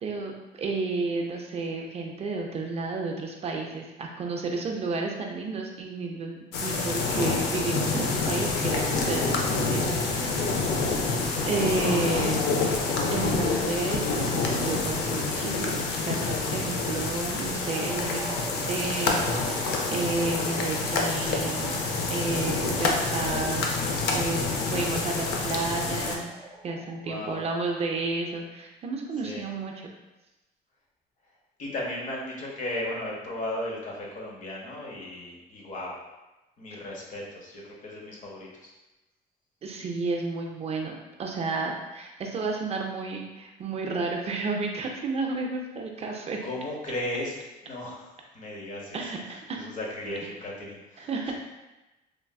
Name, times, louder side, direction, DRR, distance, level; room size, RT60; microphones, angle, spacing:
voice 1, 0.0-10.6 11.5-12.4 13.1-14.3 14.6-18.4 18.7-21.7 22.1-26.3 26.6-29.9 39.6-40.9 41.2-46.4 48.9-49.6 51.0-51.3, right 3 dB, 40° right, 1 dB, 0.4 m, -32 dB
sound 1, 6.5-26.2, left 3 dB, 80° left, 0.5 m, -27 dB
sound 2, 17.4-27.1, right 1 dB, 10° right, 0.8 m, -42 dB
voice 2, 27.0-27.4 29.2-29.4 31.6-35.9 36.6-38.7 46.0-46.1 46.4-47.4 47.6-51.3, left 1 dB, 50° left, -3 dB, 0.8 m, -36 dB
3.2 x 2.4 x 2.3 m, 1.0 s
cardioid pair, 110°, 17 cm